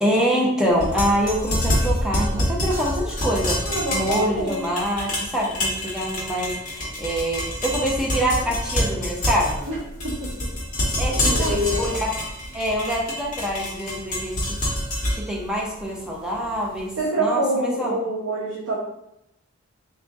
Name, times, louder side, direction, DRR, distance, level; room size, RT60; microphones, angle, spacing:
voice 1, 0.0-3.7 3.9-9.7 11.0-12.1 12.5-14.6 15.1-17.9, equal, 5° right, -4 dB, 0.7 m, -25 dB
sound 1, 0.7-16.8, left 1 dB, 35° left, 1.1 m, -27 dB
voice 2, 3.6-4.7 9.7-9.8 10.0-10.5 10.8-11.9 17.0-18.8, right 1 dB, 70° right, -7 dB, 1.0 m, -26 dB
3.5 x 2.7 x 3.5 m, 0.82 s
head